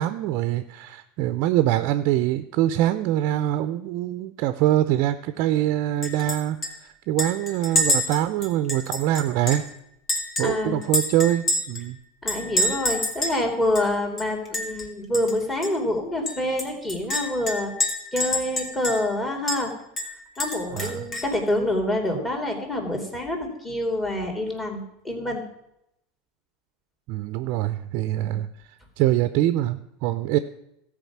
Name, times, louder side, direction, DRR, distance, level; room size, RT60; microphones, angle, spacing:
voice 1, 0.0-9.6 10.4-12.0 20.7-21.1 27.1-28.5 29.0-30.4, right 13 dB, 60° right, 11 dB, 0.5 m, -24 dB
Chink clink, 6.0-6.4 6.6-6.7 7.2-9.7 10.1-11.8 12.3-13.4 13.7-13.8 14.2-14.8 15.1-15.3 15.6-15.7 16.3-19.1 19.5-19.6 20.0-21.3, left 1 dB, 35° left, 2.5 m, -27 dB
voice 2, 10.4-10.8 12.2-17.7 18.1-19.7 20.4-25.4 28.2-28.4, left 1 dB, 15° left, 2 dB, 2.6 m, -27 dB
13.5 x 4.9 x 7.2 m, 0.80 s
supercardioid pair, 110°, 0 cm